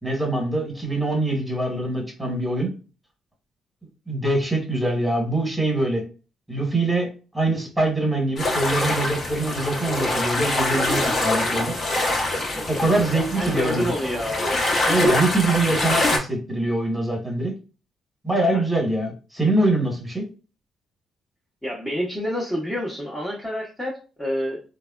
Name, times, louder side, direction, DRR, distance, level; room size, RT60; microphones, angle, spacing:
voice 1, 0.0-2.7 4.1-6.0 6.5-7.1 7.3-11.7 12.7-13.9 14.9-17.5 18.2-20.2, right 2 dB, 10° right, 0 dB, 1.2 m, -23 dB
sound 1, 8.4-16.2, left 1 dB, 45° left, 0.8 m, -24 dB
voice 2, 13.3-14.5 18.4-18.6 21.6-24.6, equal, 10° left, -5 dB, 0.7 m, -28 dB
3.2 x 2.1 x 2.3 m, 0.35 s
cardioid pair, 90°, 0 cm